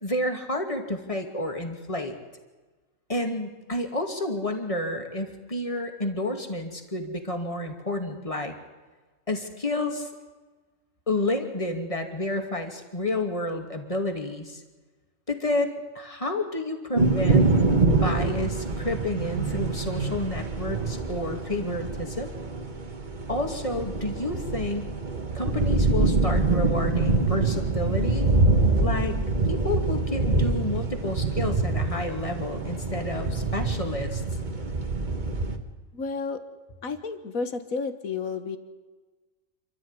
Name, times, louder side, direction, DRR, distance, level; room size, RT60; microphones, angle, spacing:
voice 1, 0.0-2.1 3.1-8.6 9.3-10.1 11.1-14.6 15.3-17.5 17.8-22.3 23.3-24.9 25.3-28.3 28.8-29.2 29.5-34.2, left 1 dB, 25° left, 4 dB, 2.6 m, -30 dB
sound 1, 17.0-35.6, right 3 dB, 35° right, 1.7 m, -25 dB
voice 2, 35.9-36.4 36.8-38.6, left 4 dB, 85° left, 10 dB, 2.0 m, -31 dB
28.0 x 13.0 x 9.8 m, 1.3 s
omnidirectional pair, 1.4 m